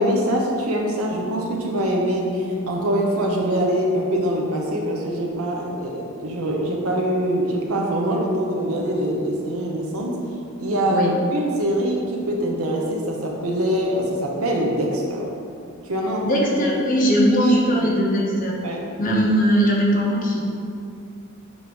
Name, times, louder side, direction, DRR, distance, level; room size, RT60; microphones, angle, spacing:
voice 1, 0.0-10.2 10.6-15.3 15.8-16.8 17.3-17.9 18.6-18.8, right 1 dB, 80° right, 0 dB, 1.0 m, -24 dB
voice 2, 16.2-18.6 19.0-20.4, equal, 40° left, -3 dB, 0.9 m, -19 dB
7.3 x 3.1 x 5.2 m, 2.4 s
head